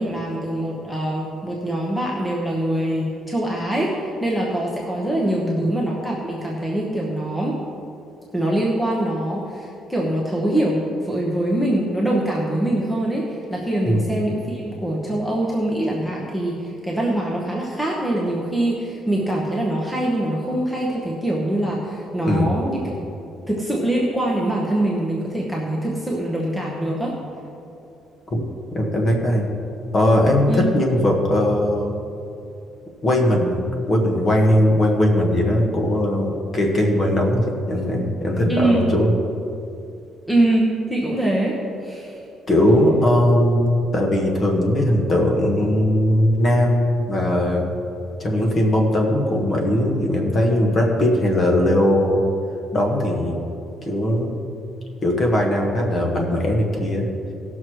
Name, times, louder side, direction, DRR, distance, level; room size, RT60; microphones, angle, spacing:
voice 1, 0.0-7.6 8.3-23.1 23.5-27.2 30.5-30.6 38.5-38.8 40.3-41.6 41.8-42.2, right 1 dB, 5° left, -3 dB, 1.0 m, -23 dB
voice 2, 28.7-29.5 29.9-31.9 33.0-39.2 42.5-47.7 48.2-52.2 52.7-53.4 53.8-54.3 55.0-57.1, left 1 dB, 30° left, 0 dB, 1.4 m, -19 dB
16.5 x 6.3 x 4.6 m, 2.6 s
cardioid pair, 175°, 0 cm